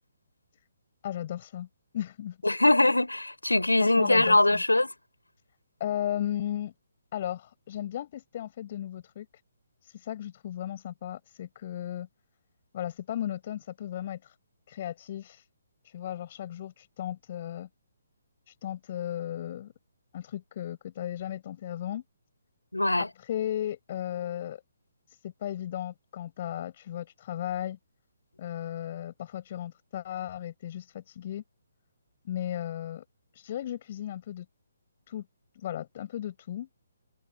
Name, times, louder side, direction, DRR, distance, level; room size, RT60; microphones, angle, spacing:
voice 1, 1.0-1.7 1.9-2.4 3.8-4.6 5.8-6.7 7.1-9.3 9.8-12.1 12.7-14.3 14.7-15.5 15.8-17.7 18.5-19.7 20.1-22.0 23.0-24.6 25.1-27.8 28.4-31.4 32.2-33.0 33.3-34.5 35.1-35.3 35.5-36.7, left 11 dB, 40° left, 7.9 m, -35 dB
voice 2, 2.4-4.9 22.7-23.1, left 2 dB, 80° left, 4.7 m, -22 dB
figure-of-eight pair, 135°, 0 cm